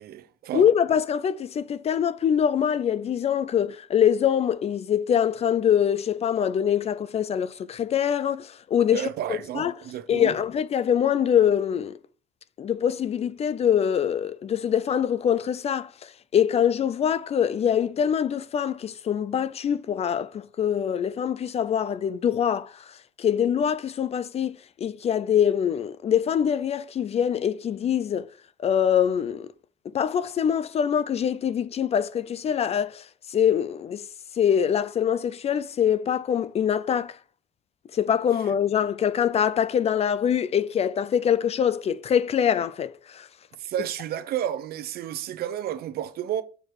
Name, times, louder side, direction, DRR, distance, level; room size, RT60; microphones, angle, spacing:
voice 1, 0.0-0.7 8.9-10.3 43.6-46.4, right 11 dB, 65° right, 0.8 m, -31 dB
voice 2, 0.5-9.7 10.1-12.0 12.6-28.3 28.6-29.5 29.9-34.0 34.4-37.2 37.9-43.3, left 8 dB, 40° left, 0.4 m, -24 dB
6.6 x 4.7 x 4.5 m
cardioid pair, 110°, 17 cm